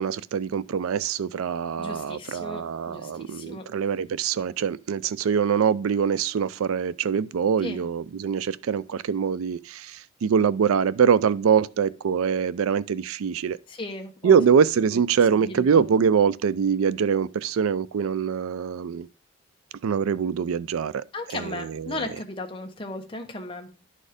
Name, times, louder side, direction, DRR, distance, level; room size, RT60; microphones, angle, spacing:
voice 1, 0.0-13.6 14.2-19.1 19.8-21.0 21.3-22.0, right 7 dB, 90° right, 0.4 m, -24 dB
voice 2, 1.8-3.7 7.6-7.8 13.7-14.4 14.9-15.0 15.3-15.8 21.1-23.7, left 2 dB, 25° left, 1.1 m, -36 dB
11.0 x 4.2 x 5.0 m
head